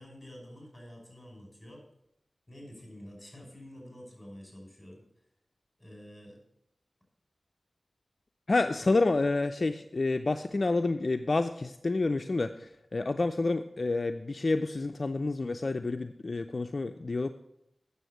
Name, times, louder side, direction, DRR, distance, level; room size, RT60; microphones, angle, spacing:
voice 1, 0.0-1.8 2.5-5.0 5.8-6.4, equal, 15° left, 0 dB, 5.5 m, -48 dB
voice 2, 8.5-17.3, left 3 dB, 55° left, 7 dB, 0.5 m, -29 dB
9.2 x 6.9 x 7.8 m, 0.79 s
cardioid pair, 50°, 0 cm